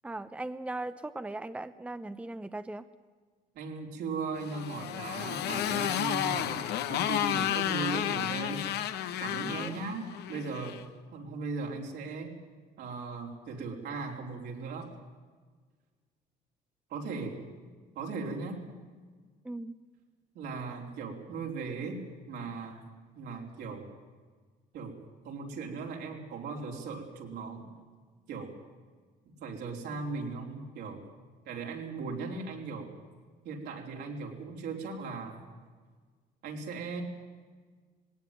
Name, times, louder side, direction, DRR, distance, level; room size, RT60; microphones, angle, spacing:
voice 1, 0.0-2.8 9.4-9.8 19.4-19.7, right 2 dB, 5° right, 11 dB, 0.7 m, -38 dB
voice 2, 3.5-6.6 6.9-8.7 9.2-12.4 12.8-14.9 16.9-17.5 18.0-18.7 20.3-22.8 23.1-23.9 24.7-27.7 28.3-28.6 29.3-31.0 31.4-32.9 33.4-35.5 36.4-37.0, right 4 dB, 75° right, 1 dB, 4.2 m, -38 dB
Motorcycle, 4.4-10.8, left 11 dB, 80° left, 1.3 m, -32 dB
19.5 x 17.5 x 9.2 m, 1.5 s
cardioid pair, 110°, 17 cm